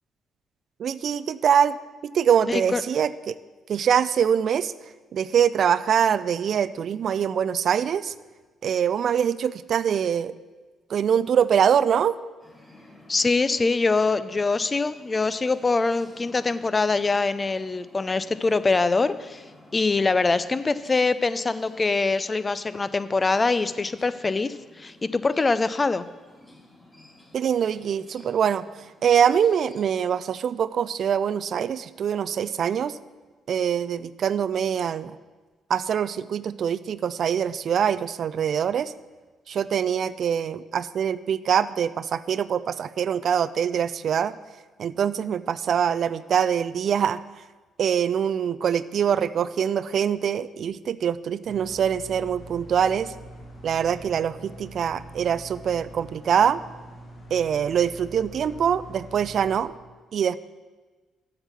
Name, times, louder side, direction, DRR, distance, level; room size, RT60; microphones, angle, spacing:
voice 1, 0.8-1.8 2.0-3.4 3.7-4.7 5.1-8.1 8.6-10.3 10.9-12.2 27.3-28.7 29.0-33.0 33.5-35.2 35.7-38.9 39.5-44.4 44.8-47.2 47.8-53.1 53.6-56.6 57.3-59.7 60.1-60.4, right 8 dB, 60° right, 16 dB, 0.3 m, -24 dB
voice 2, 2.5-2.8 13.1-19.4 19.7-26.0, left 3 dB, 30° left, 14 dB, 0.5 m, -24 dB
sound 1, 12.4-29.9, left 1 dB, 10° left, 3.5 m, -54 dB
sound 2, 51.5-59.6, right 1 dB, 55° left, 2.8 m, -44 dB
7.8 x 5.9 x 6.8 m, 1.3 s
hypercardioid pair, 45°, 0 cm